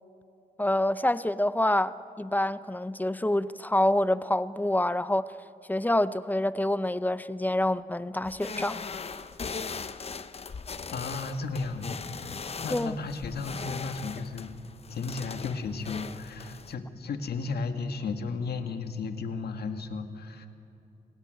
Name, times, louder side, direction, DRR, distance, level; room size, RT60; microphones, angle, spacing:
voice 1, 0.6-5.3 5.7-8.8 12.7-13.0, left 1 dB, 10° left, 15 dB, 0.6 m, -27 dB
sound 1, 8.2-16.7, left 5 dB, 40° left, 0.9 m, -39 dB
voice 2, 10.9-14.5 14.9-20.5, left 4 dB, 80° left, 7 dB, 1.9 m, -34 dB
27.5 x 16.5 x 9.3 m, 2.9 s
wide cardioid pair, 105°, 16 cm